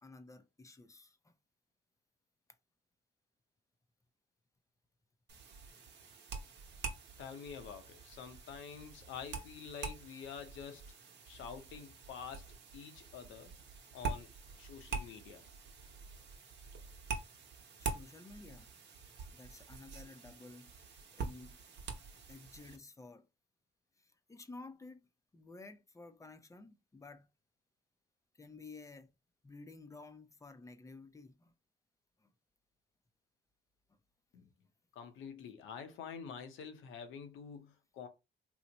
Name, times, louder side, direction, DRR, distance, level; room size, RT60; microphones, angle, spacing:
voice 1, 0.0-1.3 17.8-18.7 19.3-21.6 22.3-23.3 24.0-27.3 28.3-29.1 29.4-31.5 32.2-32.3, left 3 dB, 15° left, 0.5 m, -53 dB
sound 1, 5.3-22.8, right 4 dB, 60° right, 0.9 m, -46 dB
voice 2, 7.2-10.8 11.3-13.5 13.9-14.3 14.6-15.4 34.3-34.5 34.9-38.1, left 7 dB, 85° left, 0.7 m, -48 dB
2.9 x 2.1 x 3.8 m
cardioid pair, 90°, 20 cm